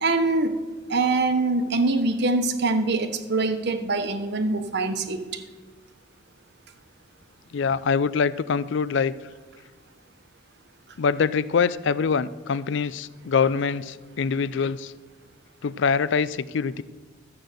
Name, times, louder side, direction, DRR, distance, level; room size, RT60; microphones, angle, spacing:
voice 1, 0.0-0.6 0.9-5.4, right 3 dB, 60° right, 8 dB, 0.9 m, -24 dB
voice 2, 7.5-9.2 11.0-14.9 15.6-16.8, left 5 dB, 65° left, 17 dB, 0.4 m, -24 dB
12.5 x 7.7 x 6.5 m, 1.3 s
head